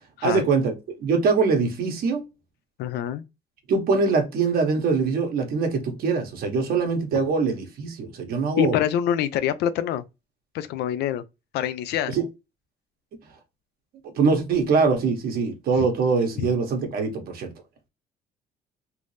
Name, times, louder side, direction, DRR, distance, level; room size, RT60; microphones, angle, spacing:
voice 1, 0.2-0.7 1.0-2.2 3.7-8.8 12.1-12.2 14.0-17.5, right 4 dB, 65° right, 1.3 m, -23 dB
voice 2, 2.8-3.2 8.6-10.0 10.5-11.2 11.5-12.2 15.8-15.9 16.4-16.5, left 10 dB, 75° left, 0.5 m, -25 dB
3.4 x 2.6 x 3.2 m
cardioid pair, 110°, 17 cm